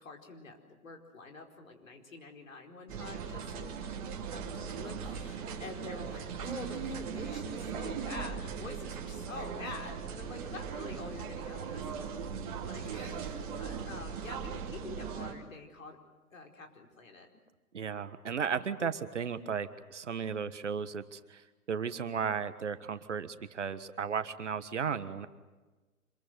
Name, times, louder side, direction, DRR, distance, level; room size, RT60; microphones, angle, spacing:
voice 1, 0.0-3.8 4.3-11.8 12.6-16.0 16.3-17.3, left 3 dB, 60° left, 3 dB, 4.7 m, -46 dB
sound 1, 2.9-15.3, right 6 dB, 25° right, 2.7 m, -39 dB
voice 2, 17.7-21.4 21.7-25.3, right 6 dB, 50° right, 12 dB, 1.5 m, -35 dB
26.5 x 22.0 x 8.0 m, 1.2 s
figure-of-eight pair, 140°, 45 cm